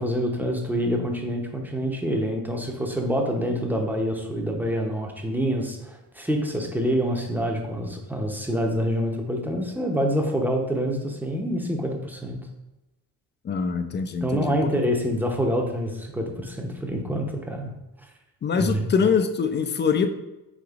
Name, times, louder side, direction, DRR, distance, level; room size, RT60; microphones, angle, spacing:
voice 1, 0.0-12.4 14.2-17.7 18.5-18.9, equal, 5° right, 1 dB, 0.7 m, -26 dB
voice 2, 13.4-14.7 18.4-20.1, left 6 dB, 30° left, 9 dB, 0.4 m, -24 dB
5.1 x 3.6 x 2.4 m, 0.97 s
cardioid pair, 85°, 40 cm